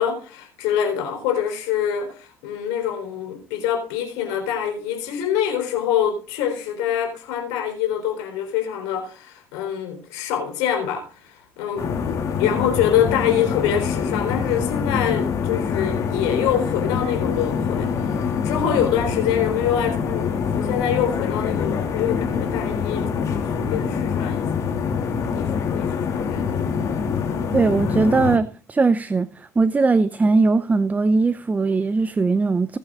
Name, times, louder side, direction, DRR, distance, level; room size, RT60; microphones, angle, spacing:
voice 1, 0.0-11.9 12.3-18.1 18.4-24.4 25.3-26.4, left 9 dB, 70° left, 4.0 m, -25 dB
sound 1, 11.8-28.4, left 6 dB, 50° left, 2.9 m, -25 dB
voice 2, 27.5-32.8, right 3 dB, 25° right, 0.7 m, -20 dB
20.0 x 8.9 x 2.5 m
hypercardioid pair, 60°, 7 cm